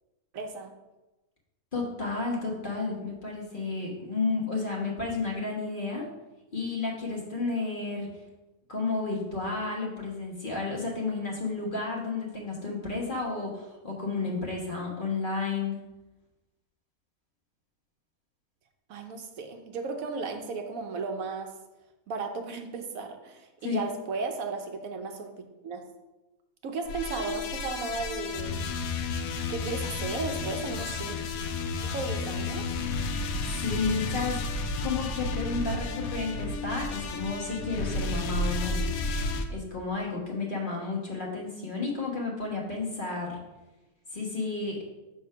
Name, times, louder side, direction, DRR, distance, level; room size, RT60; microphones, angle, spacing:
voice 1, 0.3-0.7 18.9-21.5 22.1-25.3 25.6-25.8 26.6-28.6 29.5-31.2 31.8-32.7, right 4 dB, 75° right, 4 dB, 1.1 m, -35 dB
voice 2, 1.7-6.1 6.5-8.1 8.7-15.8 23.6-23.8 33.6-34.4 34.8-38.9 39.5-43.4 44.1-44.8, left 4 dB, 40° left, -2 dB, 1.3 m, -32 dB
sound 1, 26.8-39.4, left 3 dB, 80° left, 1.1 m, -32 dB
6.9 x 3.6 x 5.5 m, 1.0 s
omnidirectional pair, 1.5 m